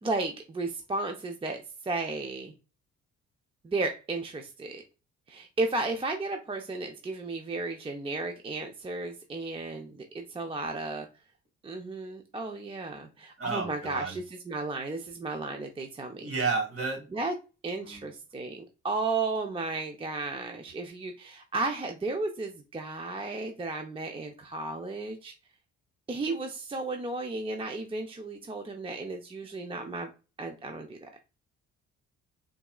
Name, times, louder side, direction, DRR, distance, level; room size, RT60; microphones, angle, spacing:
voice 1, 0.0-2.5 3.6-4.8 5.3-11.1 11.6-16.3 17.1-17.3 17.6-25.3 26.1-30.1 30.4-31.1, right 3 dB, 20° right, 4 dB, 0.4 m, -34 dB
voice 2, 13.4-14.2 16.2-17.0 17.8-18.1, right 4 dB, 50° right, 0 dB, 1.8 m, -31 dB
4.0 x 2.4 x 2.3 m, 0.31 s
cardioid pair, 90°, 30 cm